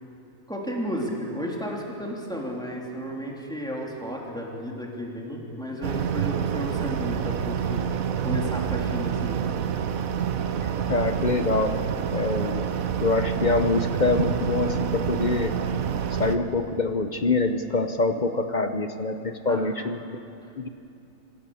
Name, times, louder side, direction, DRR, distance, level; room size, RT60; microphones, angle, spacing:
voice 1, 0.5-9.4 19.5-19.7, equal, 5° left, -2 dB, 3.1 m, -33 dB
sound 1, 5.8-16.4, right 8 dB, 80° right, 1.3 m, -27 dB
voice 2, 10.6-11.7 12.1-15.6 16.1-20.0 20.6-20.7, left 3 dB, 40° left, 8 dB, 0.8 m, -25 dB
26.0 x 16.5 x 7.1 m, 2.6 s
omnidirectional pair, 1.5 m